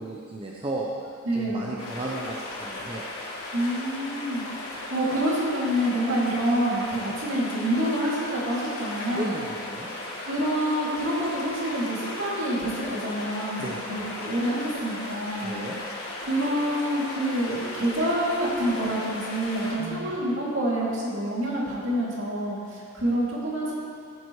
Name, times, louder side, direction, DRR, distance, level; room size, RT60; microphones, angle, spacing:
voice 1, 0.0-3.1 9.1-9.9 13.6-13.8 15.4-15.8 19.8-20.1, right 2 dB, 25° right, -3 dB, 0.8 m, -34 dB
voice 2, 1.2-1.7 3.5-4.5 4.9-9.3 10.2-15.6 16.2-23.7, right 1 dB, 60° right, -6 dB, 2.8 m, -27 dB
sound 1, 1.8-19.9, left 2 dB, 90° left, 2.9 m, -36 dB
15.5 x 9.9 x 3.3 m, 2.3 s
head